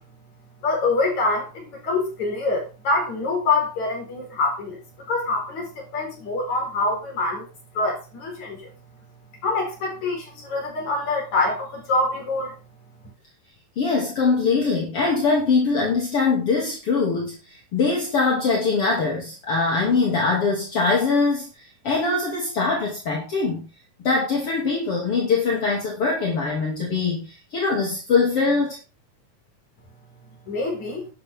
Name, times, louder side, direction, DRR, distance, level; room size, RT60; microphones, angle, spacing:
voice 1, 0.6-4.8 5.1-7.5 7.7-8.7 9.4-12.5 30.4-31.1, left 3 dB, 65° left, 1 dB, 5.8 m, -25 dB
voice 2, 13.8-21.5 21.8-23.7 24.0-28.8, left 4 dB, 50° left, -2 dB, 3.4 m, -22 dB
11.5 x 11.5 x 3.6 m, 0.31 s
omnidirectional pair, 3.5 m